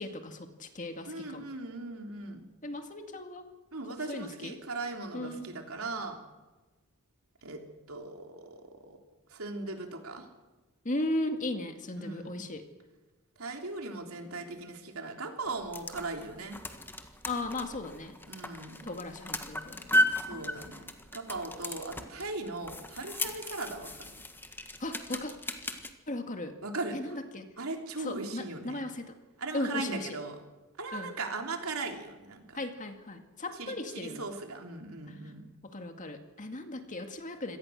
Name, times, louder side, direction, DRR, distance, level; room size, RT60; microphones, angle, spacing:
voice 1, 0.0-1.5 2.6-3.5 4.1-4.6 5.1-5.5 10.8-12.6 17.2-18.2 18.8-19.9 24.8-25.3 26.1-26.6 26.9-27.5 28.0-29.1 29.5-30.2 30.9-31.1 32.6-34.3 35.6-37.6, left 2 dB, 35° left, 6 dB, 2.1 m, -36 dB
voice 2, 1.1-2.4 3.7-6.2 7.4-7.6 7.9-9.0 9.3-10.3 12.0-12.4 13.4-16.6 18.3-18.9 20.2-24.1 26.6-27.2 27.6-28.8 29.4-30.4 30.8-32.6 33.5-35.5, right 3 dB, 75° right, 3 dB, 3.4 m, -39 dB
sound 1, 15.5-25.9, left 1 dB, 10° left, 1.5 m, -35 dB
25.5 x 18.0 x 6.5 m, 1.2 s
head